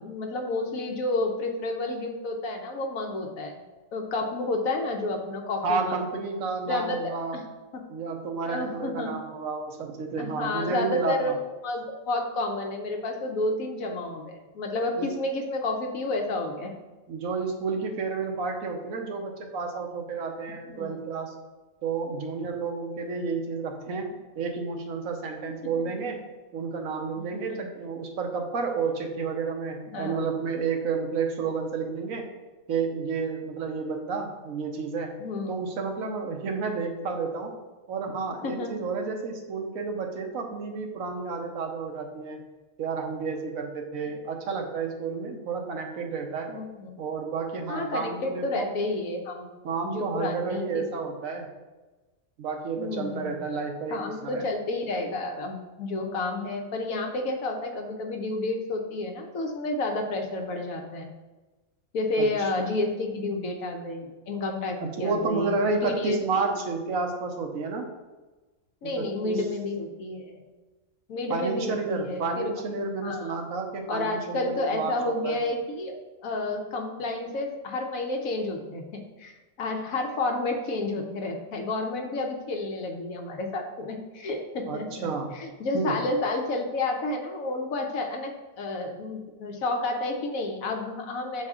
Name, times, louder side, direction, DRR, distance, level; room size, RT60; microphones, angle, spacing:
voice 1, 0.0-3.6 3.9-6.0 6.7-7.4 7.7-7.9 8.4-9.1 10.2-16.7 20.7-21.0 25.8-25.9 27.3-27.6 29.9-30.2 35.2-35.5 38.4-38.7 46.5-46.9 47.7-49.5 49.8-50.8 52.8-53.4 53.9-61.1 61.9-66.6 68.8-70.3 71.1-72.5 73.0-73.4 73.9-75.9 76.2-79.3 79.6-85.1 85.3-91.5, left 2 dB, 80° left, 3 dB, 1.3 m, -30 dB
voice 2, 5.6-7.4 7.9-11.3 15.0-15.1 17.1-21.3 21.8-26.2 26.5-32.3 32.7-35.2 35.5-37.5 37.9-42.4 42.8-46.5 47.0-48.7 49.6-51.5 52.4-54.5 62.1-62.3 64.8-67.9 69.0-69.4 71.3-75.4 84.7-85.3 85.7-86.0, right 4 dB, 75° right, 3 dB, 1.2 m, -31 dB
6.5 x 4.0 x 3.6 m, 1.2 s
omnidirectional pair, 1.4 m